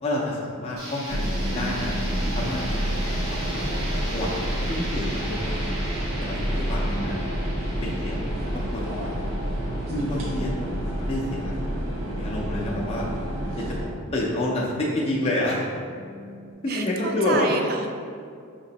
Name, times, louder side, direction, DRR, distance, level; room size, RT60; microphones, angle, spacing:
voice 1, 0.0-2.0 2.3-3.7 4.1-5.7 6.2-7.2 7.8-8.3 8.7-9.2 9.9-11.5 12.1-13.1 13.6-13.8 14.1-15.7 16.6-17.5, left 1 dB, 30° left, -4 dB, 0.4 m, -29 dB
sound 1, 0.8-10.5, right 1 dB, 85° right, 1.4 m, -38 dB
sound 2, 1.1-13.9, equal, 70° right, 0.8 m, -28 dB
sound 3, 6.2-16.5, left 1 dB, 85° left, 0.6 m, -45 dB
voice 2, 16.7-17.9, right 4 dB, 45° right, 3 dB, 0.4 m, -29 dB
5.7 x 2.9 x 2.8 m, 2.4 s
head